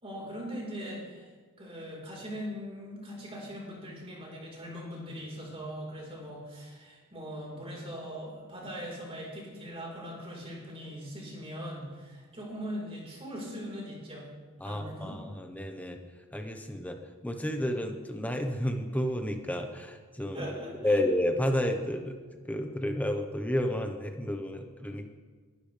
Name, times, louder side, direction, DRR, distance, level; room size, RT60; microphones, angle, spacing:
voice 1, 0.0-1.3 1.6-14.3 14.6-15.2 20.3-21.0, equal, 25° right, -3 dB, 4.4 m, -40 dB
voice 2, 14.6-16.0 16.3-20.5 20.8-22.2 22.5-25.1, left 1 dB, 5° left, 4 dB, 1.1 m, -31 dB
20.5 x 12.0 x 3.4 m, 1.5 s
head